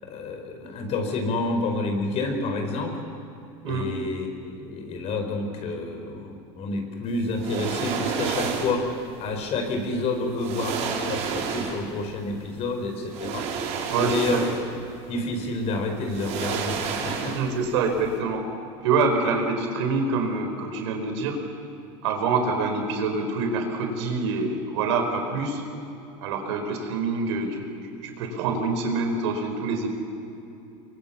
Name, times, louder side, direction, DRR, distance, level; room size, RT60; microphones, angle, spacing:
voice 1, 0.0-3.0 3.6-8.9 9.2-13.5 14.0-14.4 15.1-17.4, left 2 dB, 50° left, 5 dB, 4.9 m, -29 dB
sound 1, 7.3-8.9 9.9-10.0 10.4-12.0 13.1-14.8 15.1-15.3 16.1-17.7 17.9-18.1, right 6 dB, 55° right, 4.9 m, -30 dB
voice 2, 13.9-14.5 17.3-18.4 18.8-21.4 22.0-25.6 26.2-27.6 28.0-29.9, right 4 dB, 85° right, 4 dB, 4.6 m, -26 dB
24.5 x 23.5 x 7.2 m, 2.9 s
supercardioid pair, 125°, 14 cm